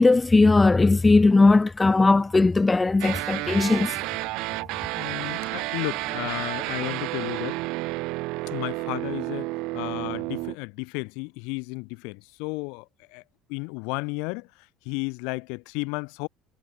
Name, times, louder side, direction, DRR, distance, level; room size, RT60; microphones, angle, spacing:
voice 1, 0.0-3.9, left 3 dB, 10° left, 1.2 m, -18 dB
sound 1, 3.0-10.6, right 23 dB, 70° right, 6.5 m, -31 dB
voice 2, 5.0-7.6 8.4-12.8 13.1-13.2 13.5-14.5 14.8-16.3, left 32 dB, 80° left, 3.0 m, -33 dB
cardioid pair, 145°, 0 cm